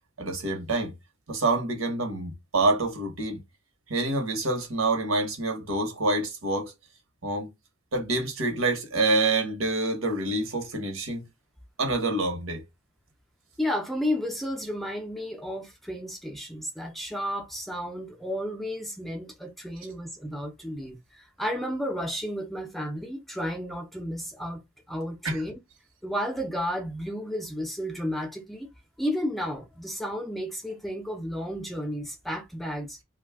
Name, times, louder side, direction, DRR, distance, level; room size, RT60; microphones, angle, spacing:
voice 1, 0.2-0.9 1.3-3.4 3.9-6.7 7.2-7.5 7.9-11.2 11.8-12.6 25.2-25.4, right 2 dB, 85° right, 1.0 m, -27 dB
voice 2, 13.6-24.6 24.9-25.6 26.0-28.7 29.0-33.0, equal, ahead, 0.4 m, -32 dB
2.5 x 2.3 x 3.4 m
head